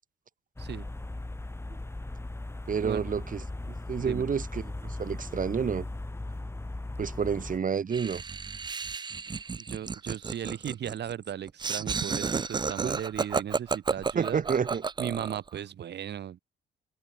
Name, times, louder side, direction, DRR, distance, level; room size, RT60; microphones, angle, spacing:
sound 1, 0.6-7.6, left 2 dB, 10° left, 2.8 m, -38 dB
voice 1, 2.7-5.9 7.0-8.2 12.8-13.0 14.1-14.8, right 6 dB, 40° right, 2.7 m, -30 dB
Laughter, 7.9-15.5, right 5 dB, 20° right, 0.5 m, -32 dB
voice 2, 9.7-14.4 15.0-16.4, right 10 dB, 60° right, 1.6 m, -36 dB
cardioid pair, 90°, 20 cm